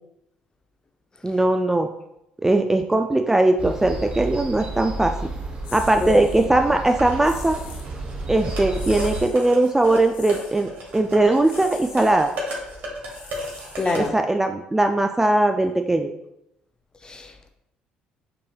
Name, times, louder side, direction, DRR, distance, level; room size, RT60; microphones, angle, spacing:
voice 1, 1.2-1.9 2.4-5.1 5.7-7.6 8.3-12.3 13.9-16.1, right 2 dB, 10° right, 5 dB, 0.3 m, -20 dB
sound 1, 3.6-9.2, right 2 dB, 35° right, 0.9 m, -32 dB
sound 2, 5.6-6.5 7.2-7.9 8.7-9.5 10.1-10.6 11.4-12.1 13.0-14.2, left 6 dB, 75° left, 0.6 m, -43 dB
sound 3, 6.9-14.1, equal, 65° right, 1.3 m, -36 dB
voice 2, 13.8-14.1 17.0-17.5, left 3 dB, 25° left, 5 dB, 0.6 m, -26 dB
5.8 x 3.2 x 2.3 m, 0.82 s
supercardioid pair, 65°, 3 cm